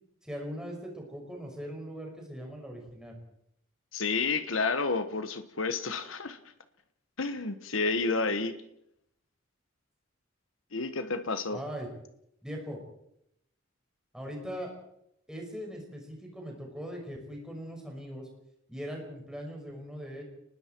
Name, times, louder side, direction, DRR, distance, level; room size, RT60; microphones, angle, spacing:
voice 1, 0.2-3.1 11.5-11.9 12.4-12.8 14.1-14.7 15.3-18.3 18.7-20.2, equal, 5° right, 0 dB, 5.7 m, -40 dB
voice 2, 3.9-6.4 7.2-8.6 10.7-11.6, left 4 dB, 85° left, 10 dB, 1.3 m, -30 dB
30.0 x 20.0 x 4.6 m, 0.77 s
head